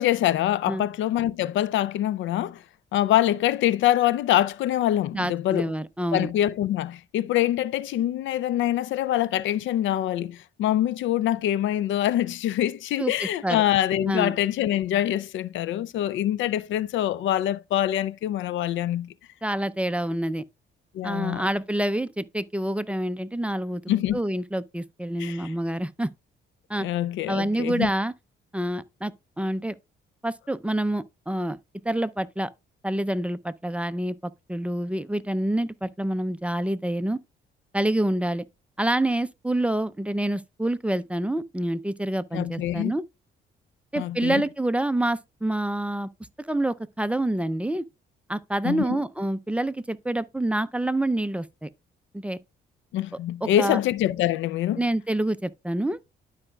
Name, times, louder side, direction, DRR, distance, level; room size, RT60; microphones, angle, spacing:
voice 1, 0.0-2.6 2.9-5.7 6.1-19.1 20.9-21.5 23.9-24.2 25.2-25.5 26.8-27.9 42.3-42.9 44.0-44.4 48.6-48.9 52.9-54.8, left 12 dB, 75° left, 0.4 m, -25 dB
voice 2, 5.1-6.3 13.0-13.6 14.0-14.3 19.4-20.4 21.0-23.8 24.1-26.1 26.7-26.9 27.3-28.1 28.5-29.8 30.2-31.6 31.8-32.5 32.8-37.2 37.7-38.4 38.8-43.0 43.9-46.1 46.5-47.8 48.3-51.7 52.1-52.4 53.4-53.8 54.8-56.0, right 1 dB, 5° right, 0.5 m, -27 dB
12.5 x 4.9 x 2.3 m
cardioid pair, 90°, 20 cm